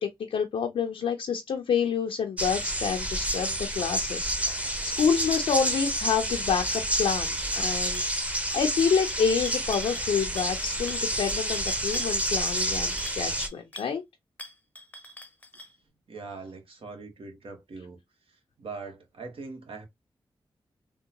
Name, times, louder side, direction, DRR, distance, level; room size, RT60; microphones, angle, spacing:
voice 1, 0.0-14.0, left 6 dB, 90° left, 0.5 m, -28 dB
sound 1, 2.4-13.5, right 1 dB, 15° right, 0.8 m, -29 dB
sound 2, 7.9-8.3 8.5-8.8 9.1-10.1 10.4-10.6 10.9-13.9 14.4-15.8, equal, 15° left, 0.6 m, -44 dB
voice 2, 16.1-18.0 18.3-19.9, right 4 dB, 75° right, 1.1 m, -42 dB
3.6 x 2.2 x 2.8 m
cardioid pair, 60°, 9 cm